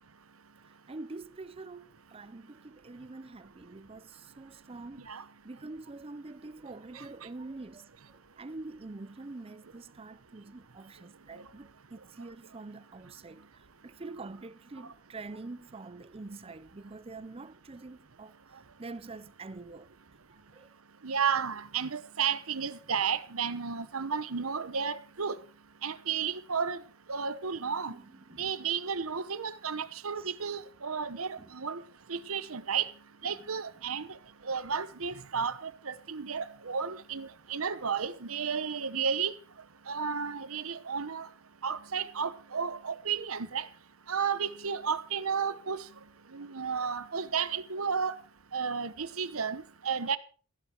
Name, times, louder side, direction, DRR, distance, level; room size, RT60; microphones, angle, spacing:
voice 1, 0.9-18.3 18.8-19.9 20.5-20.7 27.9-28.5 30.2-30.3 31.4-31.5 33.3-33.4, right 3 dB, 30° right, 0.6 m, -45 dB
voice 2, 21.0-25.4 25.8-26.8 27.1-27.9 28.4-31.8 32.1-32.9 33.2-34.2 34.4-39.3 39.9-41.3 41.6-43.7 44.1-45.8 46.3-48.1 48.5-50.2, right 6 dB, 90° right, 1.1 m, -32 dB
15.0 x 13.0 x 4.5 m
head